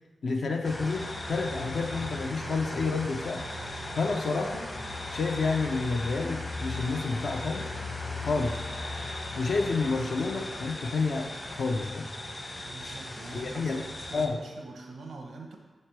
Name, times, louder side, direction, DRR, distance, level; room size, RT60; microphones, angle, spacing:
voice 1, 0.2-3.4 4.0-4.7 5.1-7.7 8.2-8.6 9.4-12.1 13.3-13.8 14.1-14.4, left 4 dB, 70° left, 2 dB, 0.5 m, -29 dB
sound 1, 0.6-14.3, left 2 dB, 40° left, 0.8 m, -37 dB
voice 2, 12.6-15.6, right 3 dB, 80° right, 1 dB, 0.7 m, -44 dB
6.6 x 3.2 x 4.5 m, 1.3 s
cardioid pair, 75°, 0 cm